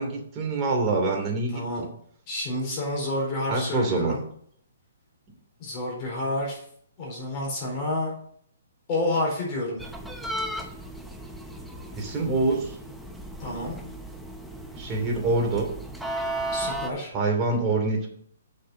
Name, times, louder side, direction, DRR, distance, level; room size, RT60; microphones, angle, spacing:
voice 1, 0.0-1.9 3.5-4.1 11.9-12.8 14.7-15.7 17.1-18.1, right 3 dB, 20° right, 0 dB, 2.6 m, -25 dB
voice 2, 1.5-1.8 2.3-4.2 5.6-6.6 7.0-8.1 8.9-9.8 13.4-13.8 16.5-17.1, left 1 dB, 35° left, -2 dB, 4.3 m, -29 dB
sound 1, 9.8-16.9, right 1 dB, ahead, 0.8 m, -35 dB
6.7 x 6.7 x 6.4 m, 0.63 s
hypercardioid pair, 150°, 0 cm